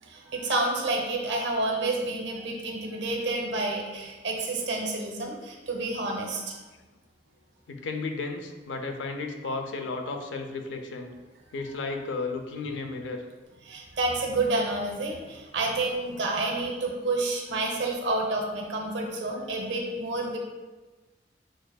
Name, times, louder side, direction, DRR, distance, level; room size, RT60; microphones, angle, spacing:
voice 1, 0.0-6.6 13.6-20.4, right 2 dB, 85° right, 1 dB, 0.7 m, -29 dB
voice 2, 7.7-11.1 11.5-13.2, left 3 dB, 90° left, 4 dB, 0.5 m, -33 dB
6.2 x 2.5 x 2.3 m, 1.2 s
head